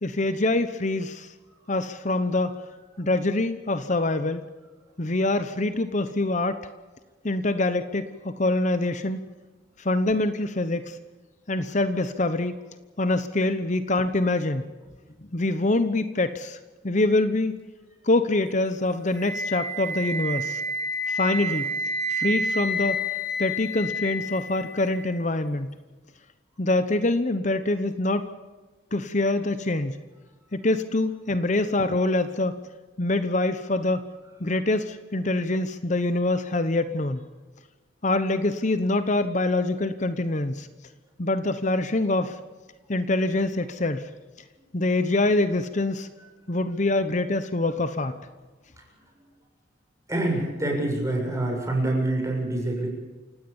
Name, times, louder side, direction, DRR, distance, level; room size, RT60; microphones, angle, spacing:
voice 1, 0.0-1.3 1.7-2.6 3.0-4.4 5.0-6.6 7.2-9.2 9.8-11.0 11.5-12.5 13.0-14.6 15.3-16.6 16.8-17.6 18.0-20.6 21.1-21.7 22.1-23.0 23.4-25.7 26.6-28.2 28.9-30.0 30.5-32.5 33.0-34.0 34.4-37.2 38.0-40.7 41.2-42.4 42.9-44.1 44.7-46.1 46.5-48.1, left 2 dB, 40° left, 11 dB, 1.0 m, -25 dB
Wind instrument woodwind instrument, 19.1-25.1, equal, 55° left, 4.6 m, -29 dB
voice 2, 50.1-52.9, right 1 dB, 15° right, 0 dB, 7.3 m, -26 dB
29.0 x 17.0 x 7.2 m, 1.3 s
head